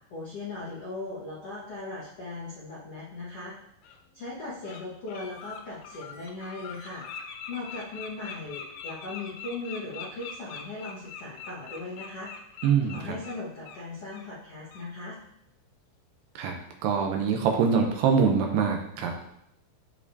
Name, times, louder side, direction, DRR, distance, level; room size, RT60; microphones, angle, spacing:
voice 1, 0.1-3.5 4.1-7.1 7.5-12.3 12.9-15.2, left 2 dB, 70° left, -8 dB, 1.4 m, -38 dB
Bird, 3.8-4.0 4.4-4.8 5.1-13.8 14.1-14.3 14.7-14.9, left 7 dB, 85° left, 2.2 m, -42 dB
voice 2, 12.6-13.2 16.4-16.6 16.8-19.1, right 6 dB, 80° right, 2 dB, 2.4 m, -24 dB
13.0 x 4.8 x 2.7 m, 0.76 s
omnidirectional pair, 5.4 m